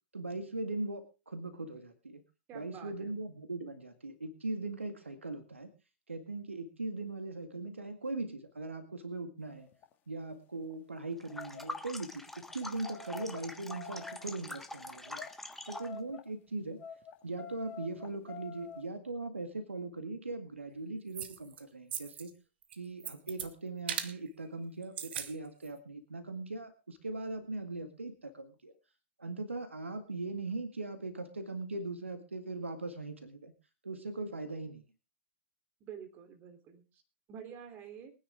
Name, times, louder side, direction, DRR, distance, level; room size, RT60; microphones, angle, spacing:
voice 1, 0.1-2.2 2.5-5.7 6.1-9.7 10.1-15.2 15.7-16.8 17.2-22.3 22.7-28.7 29.2-33.5 33.8-34.8, right 2 dB, 80° right, 8 dB, 1.9 m, -40 dB
voice 2, 2.5-3.2 35.8-36.8 37.3-38.1, right 8 dB, 30° right, 7 dB, 3.3 m, -48 dB
sound 1, 9.6-9.9 10.6-10.8 11.3-11.7 12.4-14.4 15.0-15.3 15.7-16.3 16.8-18.8, left 6 dB, 30° left, 2.1 m, -47 dB
sound 2, 11.2-16.0, left 2 dB, 5° left, 1.4 m, -44 dB
sound 3, 21.1-21.6 21.9-22.3 22.6-23.5 23.9-24.1 24.8-25.3 25.6-25.7, right 9 dB, 55° right, 1.5 m, -38 dB
22.5 x 9.9 x 3.6 m, 0.30 s
figure-of-eight pair, 105°, 7 cm